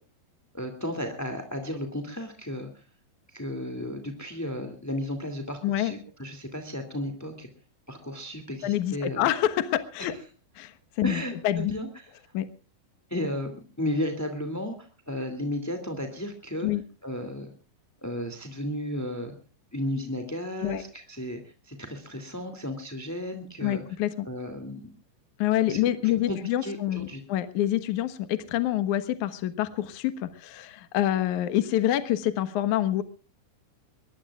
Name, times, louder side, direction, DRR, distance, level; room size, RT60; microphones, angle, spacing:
voice 1, 0.5-2.7 3.3-7.5 7.9-9.3 10.0-10.1 11.0-12.1 13.1-16.7 17.0-17.5 18.0-19.3 19.7-23.8 24.2-24.9 25.7-25.8 26.0-27.2, left 1 dB, 10° left, 6 dB, 0.9 m, -34 dB
voice 2, 8.6-10.1 10.6-11.7 12.3-12.5 16.6-16.8 20.6-20.8 23.6-24.3 25.4-33.0, left 12 dB, 65° left, 11 dB, 2.0 m, -27 dB
23.0 x 21.5 x 2.4 m, 0.36 s
omnidirectional pair, 5.1 m